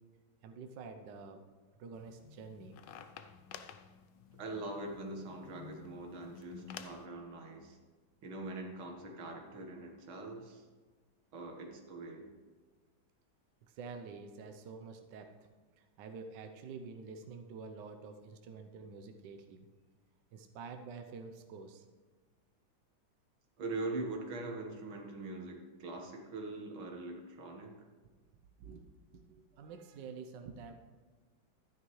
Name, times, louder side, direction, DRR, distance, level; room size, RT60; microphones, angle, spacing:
voice 1, 0.4-1.4 1.8-2.8 13.7-15.5 15.8-19.7 20.3-21.8 28.6-28.9 29.1-30.7, right 5 dB, 70° right, 6 dB, 1.3 m, -48 dB
sound 1, 1.9-7.1, left 7 dB, 70° left, 1.2 m, -52 dB
voice 2, 4.4-7.8 8.2-10.6 11.3-12.3 23.6-27.8, right 2 dB, 85° right, 2 dB, 2.3 m, -42 dB
12.5 x 10.0 x 3.1 m, 1.4 s
omnidirectional pair, 2.2 m